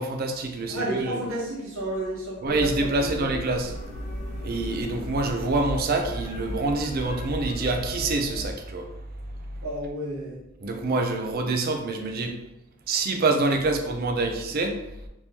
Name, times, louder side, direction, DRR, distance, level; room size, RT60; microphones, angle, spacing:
voice 1, 0.0-1.2 2.4-3.8 4.4-8.9 10.6-12.4 12.9-14.9, right 3 dB, 45° right, 4 dB, 0.4 m, -26 dB
voice 2, 0.7-3.3 9.6-10.4, right 1 dB, 75° right, -4 dB, 1.2 m, -31 dB
sound 1, 2.4-8.5, equal, 35° left, 0.7 m, -35 dB
3.0 x 2.8 x 3.4 m, 0.91 s
head